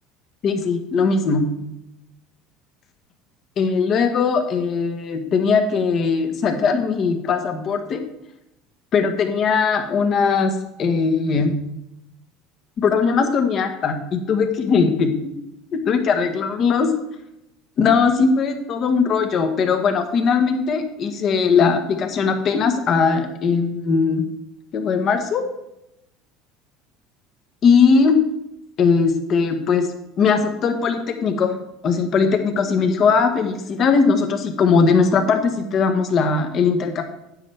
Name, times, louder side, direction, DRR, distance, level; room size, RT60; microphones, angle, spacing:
voice 1, 0.4-1.4 3.6-8.0 8.9-11.6 12.8-15.3 15.7-16.9 17.8-24.2 24.7-25.4 27.6-28.2 28.8-29.9 30.2-31.5 31.8-37.0, left 5 dB, 45° left, 6 dB, 1.3 m, -19 dB
9.9 x 7.6 x 3.5 m, 0.85 s
supercardioid pair, 110°, 0 cm